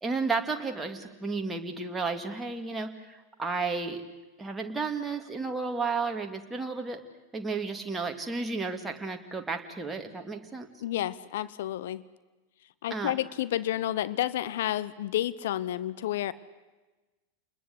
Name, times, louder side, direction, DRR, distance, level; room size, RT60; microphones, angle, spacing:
voice 1, 0.0-4.0 4.4-7.0 7.3-10.7 12.9-13.1, right 4 dB, 10° right, 4 dB, 2.3 m, -32 dB
voice 2, 10.8-12.0 12.8-16.3, left 13 dB, 55° left, 16 dB, 0.7 m, -30 dB
29.0 x 21.0 x 8.2 m, 1.2 s
figure-of-eight pair, 90°, 0 cm